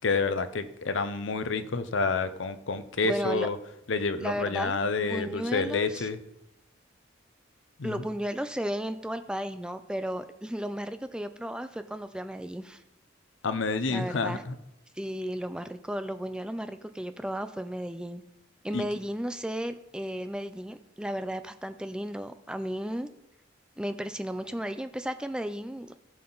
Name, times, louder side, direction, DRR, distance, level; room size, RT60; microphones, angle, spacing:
voice 1, 0.0-3.6 3.9-6.2 7.8-8.0 13.4-14.5 18.7-18.8, left 4 dB, 70° left, 11 dB, 0.7 m, -29 dB
voice 2, 3.0-3.5 4.2-6.1 7.8-12.8 13.9-14.4 15.0-18.2 18.6-23.1 23.8-25.9, equal, 5° right, 10 dB, 0.5 m, -34 dB
16.0 x 5.7 x 4.0 m, 0.84 s
head